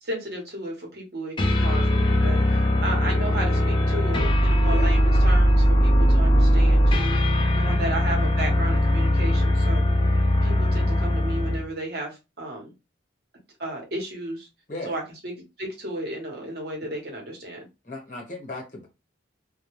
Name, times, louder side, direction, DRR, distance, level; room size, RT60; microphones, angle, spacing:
voice 1, 0.0-7.2 7.5-9.8 10.4-12.7 13.6-14.5 14.8-15.3 15.6-17.7, right 1 dB, 55° right, 0.9 m, -33 dB
sound 1, 1.4-11.7, equal, 25° left, 0.4 m, -20 dB
voice 2, 17.8-18.9, left 2 dB, 40° left, 1.0 m, -36 dB
2.2 x 2.1 x 3.0 m
head